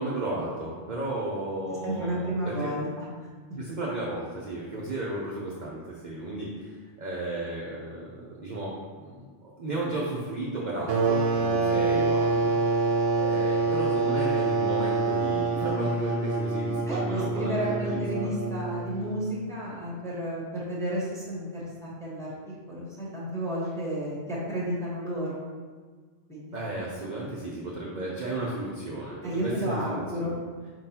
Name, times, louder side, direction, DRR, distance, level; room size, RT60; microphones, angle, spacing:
voice 1, 0.0-2.7 3.6-12.5 13.2-18.3 26.5-30.3, right 2 dB, 45° right, -5 dB, 0.6 m, -34 dB
voice 2, 1.8-3.0 11.9-12.0 16.9-25.5 26.3-26.5 29.2-30.4, right 1 dB, 5° left, -6 dB, 1.0 m, -32 dB
sound 1, 10.9-19.3, right 3 dB, 85° right, 1.0 m, -26 dB
4.8 x 3.8 x 2.8 m, 1.5 s
omnidirectional pair, 1.3 m